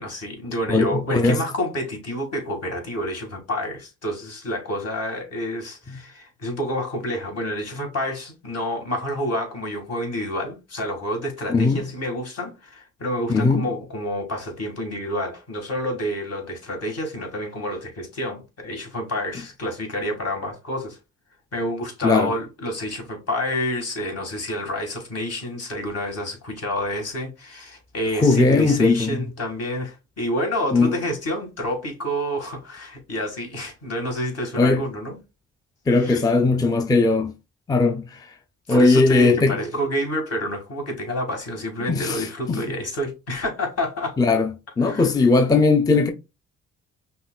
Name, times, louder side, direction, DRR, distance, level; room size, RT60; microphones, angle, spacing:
voice 1, 0.0-21.0 21.5-35.2 35.9-36.2 38.7-44.2 44.8-45.1, equal, 55° left, 2.1 m, -28 dB
voice 2, 0.7-1.4 5.9-6.0 11.5-11.8 13.3-13.6 22.0-22.3 28.2-29.2 30.7-30.9 34.6-34.8 35.9-37.3 37.7-38.2 38.7-39.6 41.9-42.6 44.2-44.5 44.8-46.1, left 3 dB, 15° left, 0.4 m, -18 dB
5.4 x 2.8 x 2.3 m
cardioid pair, 90°, 30 cm